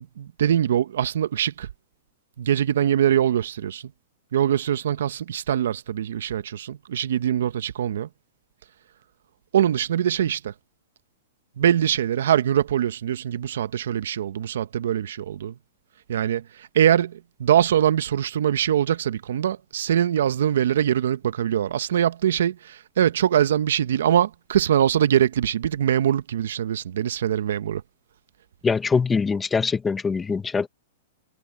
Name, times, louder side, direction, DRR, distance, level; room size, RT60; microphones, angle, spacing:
voice 1, 0.0-1.7 2.4-3.9 4.3-8.1 9.5-10.5 11.6-15.5 16.1-27.8, right 10 dB, 75° right, 1.1 m, -23 dB
voice 2, 28.6-30.7, left 5 dB, 15° left, 1.1 m, -23 dB
hypercardioid pair, 135°, 0 cm